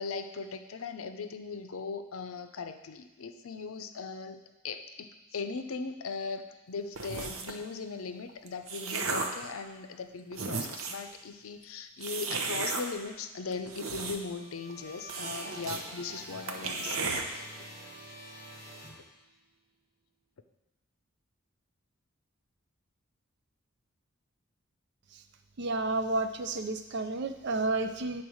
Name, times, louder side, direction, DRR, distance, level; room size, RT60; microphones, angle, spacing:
voice 1, 0.0-4.4 4.6-17.5, left 4 dB, 80° left, 8 dB, 0.6 m, -39 dB
sound 1, 7.0-7.6 8.3-9.4 10.0-10.1 10.3-11.1 12.0-12.8 13.5-14.4 14.7-14.8 15.1-15.8 16.1-16.2 16.5-17.2, right 4 dB, 75° right, 0.8 m, -34 dB
sound 2, 14.2-19.6, right 1 dB, 15° right, 1.4 m, -48 dB
voice 2, 25.6-28.2, right 2 dB, 55° right, 8 dB, 0.5 m, -31 dB
8.7 x 4.3 x 6.3 m, 1.0 s
head